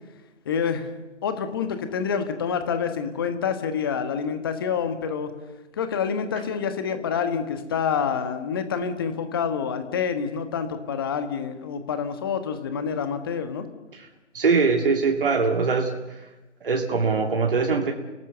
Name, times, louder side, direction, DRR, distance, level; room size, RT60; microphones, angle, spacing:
voice 1, 0.4-0.9 1.2-5.3 5.7-13.6, left 6 dB, 20° left, 9 dB, 1.3 m, -27 dB
voice 2, 14.3-15.9 16.6-17.9, right 4 dB, 45° right, 2 dB, 2.4 m, -22 dB
30.0 x 18.0 x 6.9 m, 1.1 s
figure-of-eight pair, 155°, 37 cm